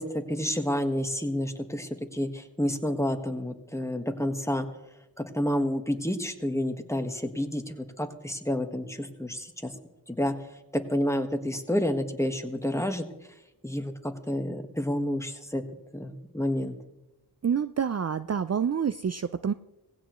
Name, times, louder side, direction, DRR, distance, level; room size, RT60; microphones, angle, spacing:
voice 1, 0.0-4.7 5.2-9.7 10.1-10.3 10.7-13.1 13.6-15.6 15.9-16.8, left 1 dB, 5° left, 6 dB, 1.5 m, -29 dB
voice 2, 17.4-19.5, right 7 dB, 40° right, 12 dB, 0.5 m, -27 dB
18.5 x 16.0 x 3.1 m, 0.97 s
wide cardioid pair, 50°, 40 cm